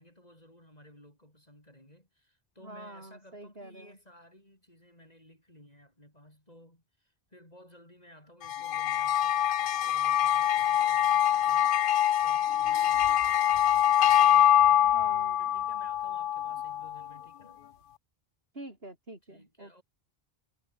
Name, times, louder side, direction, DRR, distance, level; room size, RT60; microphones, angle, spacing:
voice 1, 0.0-14.9 15.4-17.6 19.2-19.8, left 1 dB, 40° left, 7.9 m, -56 dB
voice 2, 2.6-3.9 14.9-15.4 18.5-19.7, right 1 dB, 75° right, 6.5 m, -46 dB
sound 1, 8.4-17.1, left 11 dB, 65° left, 0.7 m, -24 dB
omnidirectional pair, 1.0 m